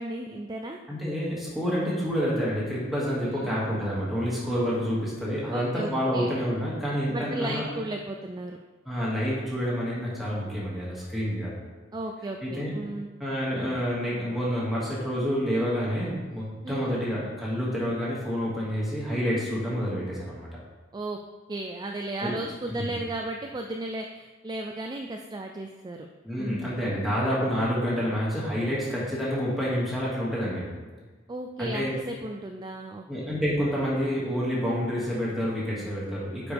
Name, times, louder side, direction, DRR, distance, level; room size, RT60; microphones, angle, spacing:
voice 1, 0.0-0.8 3.2-3.5 5.5-6.4 7.1-8.6 11.9-13.1 16.6-17.0 20.9-21.2 21.5-26.1 26.4-26.8 31.3-33.0, right 2 dB, 20° right, 3 dB, 0.3 m, -35 dB
voice 2, 0.9-7.6 8.9-11.5 12.4-12.7 13.2-20.5 22.2-22.3 22.7-22.9 26.2-30.6 31.6-31.9 33.1-36.5, equal, ahead, -8 dB, 2.1 m, -28 dB
9.4 x 5.0 x 3.4 m, 1.4 s
head